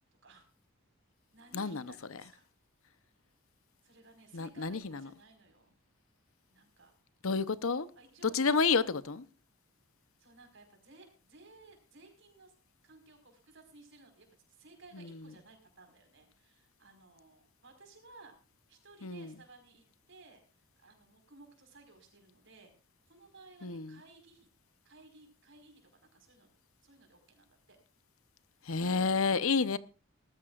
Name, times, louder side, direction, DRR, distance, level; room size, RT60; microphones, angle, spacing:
voice 1, 1.3-2.5 3.8-5.7 6.5-6.9 7.9-8.9 10.2-12.5 12.8-18.3 18.7-22.7 23.0-24.5 24.8-26.5 26.8-27.8, right 3 dB, 55° right, 4.8 m, -58 dB
voice 2, 4.3-5.0 7.2-7.9 8.2-9.2 19.0-19.3 23.6-24.0 28.6-29.8, left 4 dB, 70° left, 0.8 m, -30 dB
19.5 x 13.5 x 2.4 m
head